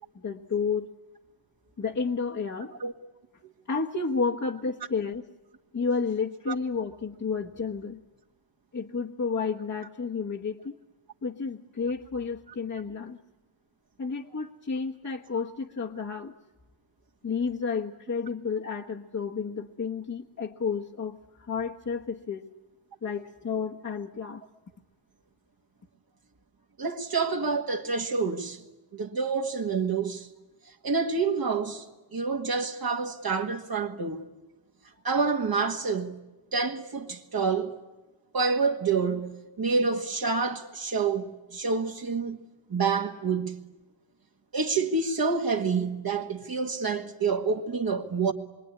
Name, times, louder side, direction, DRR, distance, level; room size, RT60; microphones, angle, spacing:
voice 1, 0.1-0.9 1.8-2.7 3.7-5.3 5.7-8.0 8.7-10.7 11.2-13.2 14.0-16.3 17.2-22.4 23.0-24.4, left 5 dB, 35° left, 1.3 m, -31 dB
voice 2, 26.8-28.6 28.9-30.3 30.8-31.9 32.1-34.2 35.0-36.2 36.5-37.8 38.3-39.3 39.6-42.4 42.7-43.6 44.5-48.3, right 4 dB, 45° right, 1.7 m, -28 dB
26.0 x 23.5 x 9.7 m
wide cardioid pair, 105°, 48 cm